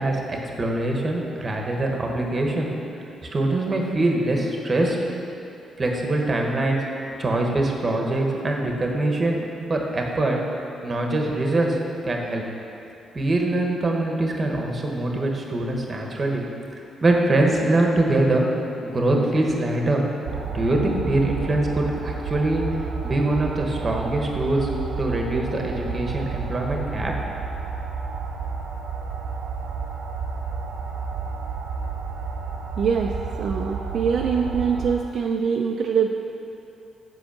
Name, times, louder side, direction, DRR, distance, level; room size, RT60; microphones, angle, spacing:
voice 1, 0.0-2.7 3.3-5.0 5.8-6.8 7.2-9.4 9.7-10.4 10.8-11.8 12.0-12.4 13.1-16.4 16.7-18.5 18.8-20.0 20.4-22.6 23.0-24.7 25.0-27.1, right 2 dB, 25° right, 0 dB, 1.0 m, -23 dB
sound 1, 20.2-34.9, right 5 dB, 70° right, 0.7 m, -31 dB
voice 2, 32.8-33.1 33.4-36.1, right 6 dB, 50° right, 1 dB, 0.4 m, -23 dB
7.9 x 5.5 x 7.1 m, 2.8 s
cardioid pair, 170°, 0 cm